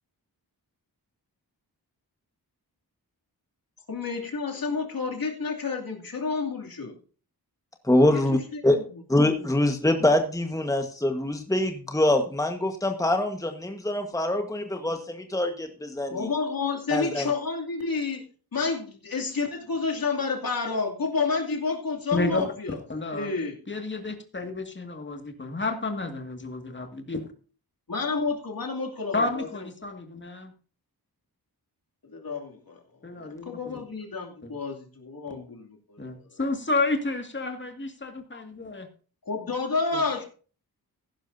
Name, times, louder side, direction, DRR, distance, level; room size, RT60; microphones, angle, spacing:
voice 1, 3.9-6.9 7.9-8.2 8.5-8.8 16.1-18.2 18.5-22.8 23.1-23.5 27.9-29.5 32.1-32.8 33.2-36.2 39.3-40.3, left 4 dB, 60° left, 1 dB, 2.8 m, -30 dB
voice 2, 7.8-8.8 9.1-16.3 16.9-17.3, left 1 dB, 10° left, 5 dB, 1.4 m, -24 dB
voice 3, 22.1-23.3 23.7-27.3 29.1-30.5 33.0-33.6 34.4-34.5 36.0-38.9 39.9-40.0, left 2 dB, 30° left, 5 dB, 2.1 m, -31 dB
15.5 x 11.0 x 2.7 m, 0.39 s
wide cardioid pair, 80°, 39 cm